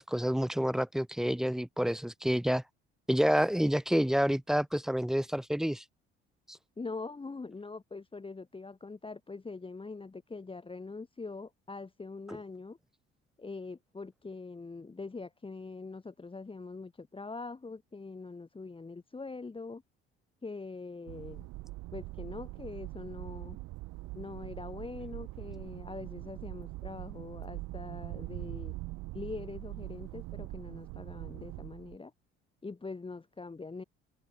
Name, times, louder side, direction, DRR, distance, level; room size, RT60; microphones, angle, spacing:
voice 1, 0.0-2.6 3.1-5.8 6.5-6.6, equal, ahead, 0.5 m, -28 dB
voice 2, 6.8-12.8 13.4-19.8 20.4-21.5 21.9-23.6 24.1-28.8 29.1-32.1 32.6-33.8, left 3 dB, 15° left, 1.1 m, -43 dB
sound 1, 21.1-32.0, right 21 dB, 60° right, 0.7 m, -42 dB
hypercardioid pair, 55°, 34 cm